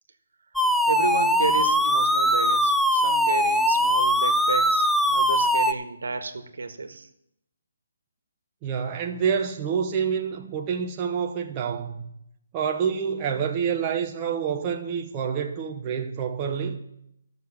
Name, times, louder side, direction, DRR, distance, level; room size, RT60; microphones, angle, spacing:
sound 1, 0.6-5.7, equal, ahead, 0.3 m, -21 dB
voice 1, 0.9-7.1, right 4 dB, 80° right, 1.6 m, -31 dB
voice 2, 8.6-12.1 12.5-16.8, right 7 dB, 20° right, 0.8 m, -27 dB
13.0 x 6.7 x 7.0 m
hypercardioid pair, 170°, 0 cm